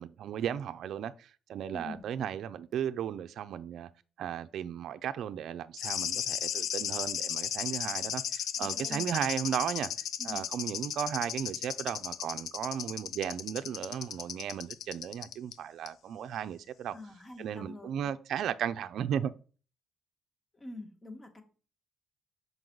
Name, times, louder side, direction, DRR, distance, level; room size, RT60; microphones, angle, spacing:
voice 1, 0.0-3.9 4.2-9.9 10.2-17.0 17.4-19.3, right 9 dB, 70° right, 0.4 m, -35 dB
voice 2, 1.7-2.0 8.6-9.1 10.2-10.5 16.9-18.1 20.5-21.4, left 2 dB, 20° left, 1.6 m, -45 dB
sound 1, 5.8-15.5 15.9-16.0, left 10 dB, 80° left, 0.4 m, -35 dB
6.0 x 5.3 x 3.9 m
cardioid pair, 90°, 0 cm